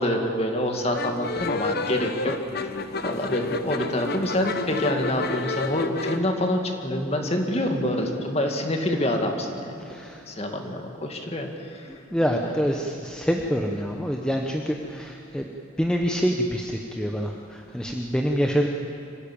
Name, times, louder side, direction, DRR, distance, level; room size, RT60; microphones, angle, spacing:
voice 1, 0.0-2.3 3.0-9.7 10.3-11.9, left 1 dB, 30° left, 3 dB, 2.2 m, -26 dB
sound 1, 0.9-6.2, left 3 dB, 50° left, 0.9 m, -30 dB
voice 2, 9.8-10.2 11.9-15.5 15.8-18.7, equal, 5° left, 1 dB, 0.9 m, -26 dB
26.0 x 15.5 x 8.7 m, 2.8 s
head